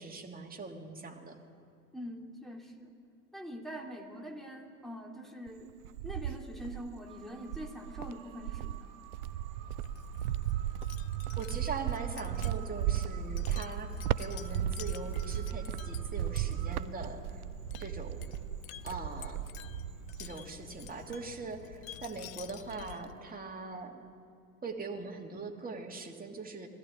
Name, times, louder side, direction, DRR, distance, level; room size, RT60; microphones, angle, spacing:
voice 1, 0.0-1.4 11.3-17.4 17.8-18.3 18.8-19.4 20.2-24.0 24.6-26.7, right 4 dB, 20° right, 1 dB, 2.7 m, -41 dB
voice 2, 1.9-2.9 3.3-5.8 6.0-8.9, equal, ahead, 2 dB, 2.9 m, -44 dB
Cricket, 5.5-7.0 7.5-20.4 20.7-21.3, right 12 dB, 75° right, 0.6 m, -36 dB
sound 1, 7.0-16.9, right 10 dB, 45° right, 1.3 m, -54 dB
Wind chime, 9.6-23.3, left 12 dB, 65° left, 0.9 m, -48 dB
20.0 x 15.0 x 8.9 m, 2.4 s
figure-of-eight pair, 70°, 45 cm